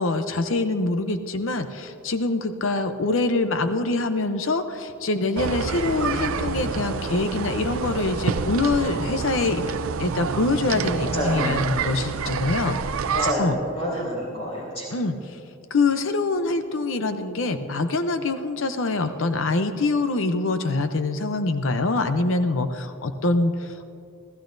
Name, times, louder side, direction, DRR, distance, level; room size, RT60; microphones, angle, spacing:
voice 1, 0.0-9.6 10.0-12.8 13.4-13.6 14.9-15.1 15.7-23.9, left 2 dB, 70° left, 8 dB, 0.7 m, -24 dB
sound 1, 5.4-13.3, right 5 dB, 90° right, 0.5 m, -28 dB
voice 2, 6.0-6.4 11.1-11.6 13.1-14.9, equal, 30° left, -5 dB, 3.7 m, -28 dB
28.5 x 15.0 x 2.6 m, 2.7 s
head